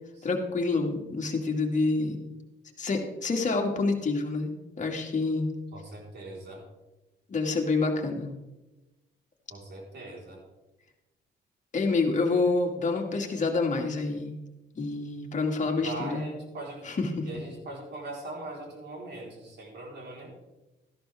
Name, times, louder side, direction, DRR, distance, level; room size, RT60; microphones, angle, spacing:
voice 1, 0.2-2.2 2.8-5.5 7.3-8.3 11.7-14.3 14.8-16.2 16.8-17.3, left 3 dB, 40° left, 2 dB, 2.1 m, -27 dB
voice 2, 5.7-6.6 9.5-10.4 15.8-16.8 17.3-20.3, right 2 dB, 55° right, -1 dB, 4.1 m, -40 dB
13.5 x 11.0 x 3.5 m, 1.0 s
cardioid pair, 90°, 20 cm